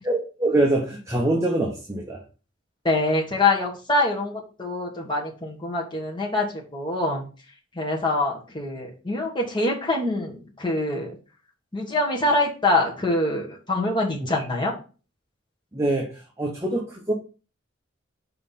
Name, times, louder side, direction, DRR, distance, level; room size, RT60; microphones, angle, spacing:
voice 1, 0.0-2.2 14.3-14.4 15.7-17.1, right 1 dB, 15° right, -2 dB, 1.0 m, -24 dB
voice 2, 2.8-7.2 7.7-11.2 11.7-14.7, left 2 dB, 20° left, -2 dB, 1.5 m, -25 dB
5.7 x 4.5 x 4.2 m, 0.35 s
head